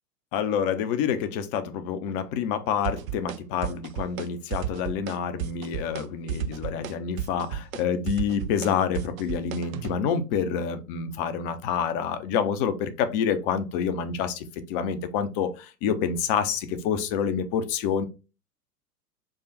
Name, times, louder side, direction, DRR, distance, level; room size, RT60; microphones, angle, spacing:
voice 1, 0.3-18.1, left 7 dB, 35° left, 10 dB, 0.8 m, -27 dB
sound 1, 2.8-3.4 3.6-4.3 4.5-5.1 5.4-6.0 6.3-10.0, right 9 dB, 60° right, 0.6 m, -32 dB
4.9 x 2.3 x 3.8 m, 0.29 s
figure-of-eight pair, 95°, 48 cm